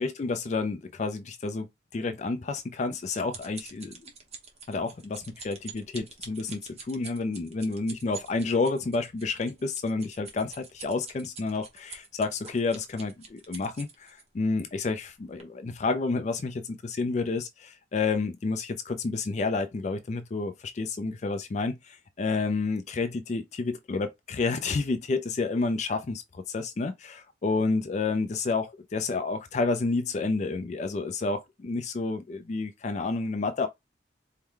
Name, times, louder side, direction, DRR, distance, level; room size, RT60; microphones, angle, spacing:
voice 1, 0.0-4.1 4.7-33.7, left 3 dB, 35° left, 0.3 m, -30 dB
sound 1, 2.6-14.2 14.9-15.1 15.4-15.5, right 5 dB, 35° right, 0.9 m, -46 dB
4.5 x 2.1 x 3.6 m
head